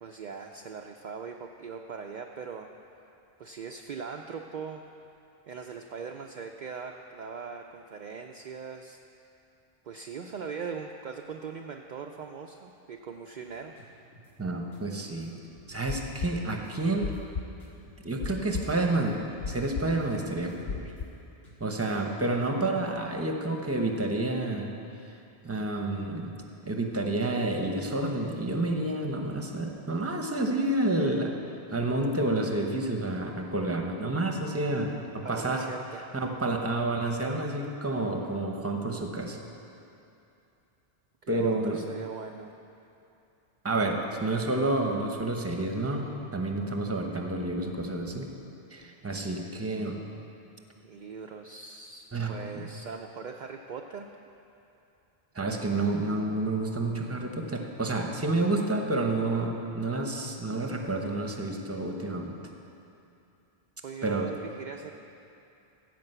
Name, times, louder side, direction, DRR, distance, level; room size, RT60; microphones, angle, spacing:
voice 1, 0.0-2.7 3.4-4.8 5.5-9.0 9.8-13.7 35.2-36.0 41.2-42.5 50.8-54.1 63.8-64.9, right 6 dB, 55° right, 3 dB, 0.6 m, -40 dB
sound 1, 13.4-19.2 19.5-19.6 20.0-21.1 21.4-22.2, left 1 dB, 75° left, 2.2 m, -55 dB
voice 2, 14.4-15.3 15.7-17.1 18.0-19.2 19.5-20.9 21.6-24.7 25.4-26.3 26.6-31.3 31.7-35.6 36.1-39.4 41.3-41.8 43.6-48.3 48.7-50.0 52.1-52.7 55.3-62.4 64.0-64.3, right 2 dB, 15° right, 2 dB, 0.9 m, -29 dB
sound 2, 15.6-18.9 19.1-21.0, left 5 dB, 55° left, 0.5 m, -35 dB
15.5 x 5.2 x 7.9 m, 2.7 s
omnidirectional pair, 1.1 m